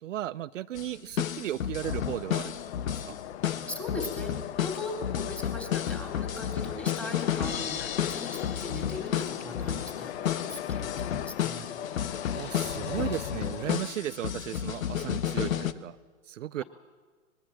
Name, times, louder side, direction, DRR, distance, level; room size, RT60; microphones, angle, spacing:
voice 1, 0.0-2.5 2.8-3.2 12.3-16.0 16.3-16.6, right 12 dB, 65° right, 15 dB, 0.6 m, -35 dB
sound 1, 0.8-0.9 1.2-15.7, left 9 dB, 70° left, 1.4 m, -32 dB
sound 2, 1.8-13.7, left 11 dB, 50° left, 0.8 m, -39 dB
voice 2, 3.7-4.3 4.6-11.7, left 2 dB, 5° left, 2 dB, 3.6 m, -39 dB
24.0 x 21.0 x 7.6 m, 1.5 s
hypercardioid pair, 135°, 42 cm